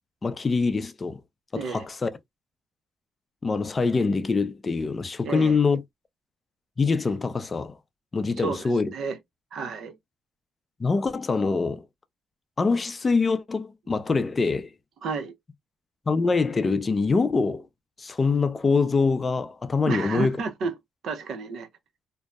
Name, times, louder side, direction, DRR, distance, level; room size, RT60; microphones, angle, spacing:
voice 1, 0.2-1.2 1.5-2.1 3.4-5.8 6.8-7.7 8.1-8.9 10.8-11.8 12.6-14.7 16.1-17.7 18.0-20.4, left 4 dB, 30° left, 0.4 m, -24 dB
voice 2, 1.6-1.9 5.2-5.6 8.4-9.2 9.5-9.9 15.0-15.3 19.8-20.7 21.0-21.7, right 5 dB, 70° right, 0.6 m, -31 dB
2.6 x 2.1 x 2.3 m
cardioid pair, 90°, 0 cm